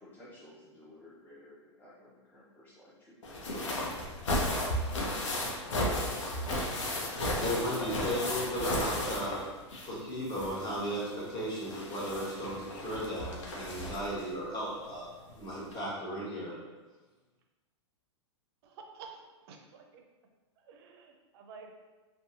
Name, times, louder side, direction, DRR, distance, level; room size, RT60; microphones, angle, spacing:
voice 1, 0.0-2.9 3.4-3.5, left 1 dB, 15° left, -8 dB, 0.5 m, -54 dB
sound 1, 3.2-10.0 10.3-14.2 15.3-15.4 15.7-15.8, left 1 dB, 80° left, 0.6 m, -34 dB
voice 2, 5.7-7.0 7.4-9.4 9.8-16.5, equal, 30° left, -7 dB, 1.3 m, -36 dB
voice 3, 18.6-20.0 20.7-21.7, right 5 dB, 60° right, 3 dB, 0.5 m, -50 dB
2.7 x 2.2 x 2.5 m, 1.2 s
hypercardioid pair, 115°, 15 cm